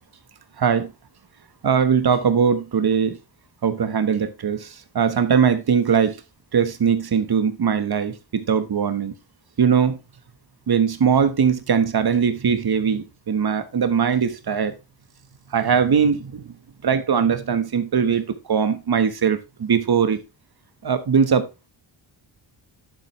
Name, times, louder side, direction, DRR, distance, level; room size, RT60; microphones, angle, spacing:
voice 1, 0.6-0.9 1.6-3.2 3.6-6.2 6.5-9.1 9.6-10.0 10.7-14.7 15.5-16.5 16.8-20.2 20.8-21.5, right 7 dB, 55° right, 1.4 m, -20 dB
10.5 x 7.4 x 3.2 m
wide cardioid pair, 105°, 46 cm